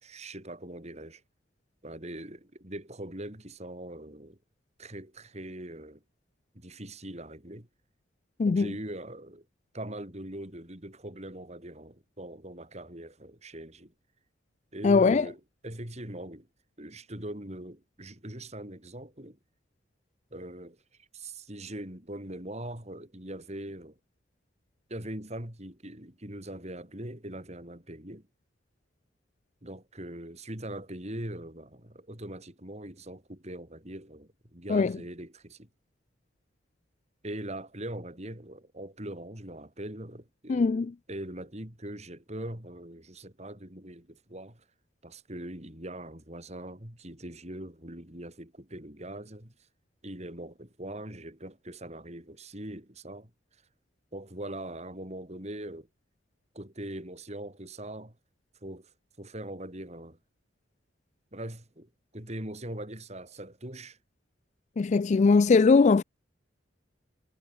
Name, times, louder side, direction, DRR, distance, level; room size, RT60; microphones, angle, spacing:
voice 1, 0.0-1.2 1.8-4.4 4.8-6.0 6.5-7.7 8.5-9.5 9.7-13.9 14.7-16.5 16.8-19.4 20.3-24.0 24.9-28.3 29.6-35.7 37.2-44.6 45.0-49.5 50.0-53.3 54.1-55.9 56.5-58.2 58.6-58.9 59.2-60.2 61.3-64.0 65.1-65.3, right 1 dB, 35° right, 4.8 m, -41 dB
voice 2, 8.4-8.7 14.8-15.3 34.7-34.9 40.5-40.9 64.8-66.0, left 4 dB, 40° left, 0.3 m, -21 dB
head